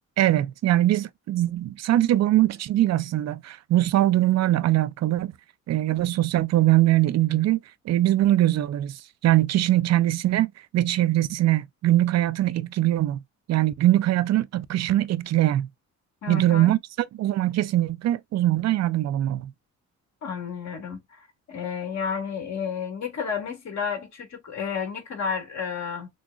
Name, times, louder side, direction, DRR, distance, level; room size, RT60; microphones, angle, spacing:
voice 1, 0.2-5.3 5.7-7.6 7.9-13.2 13.5-15.7 16.3-16.8 17.2-19.5, right 14 dB, 60° right, 0.4 m, -22 dB
voice 2, 16.2-16.8 20.2-26.1, left 6 dB, 65° left, 1.9 m, -31 dB
6.1 x 2.1 x 2.3 m
cardioid pair, 90°, 30 cm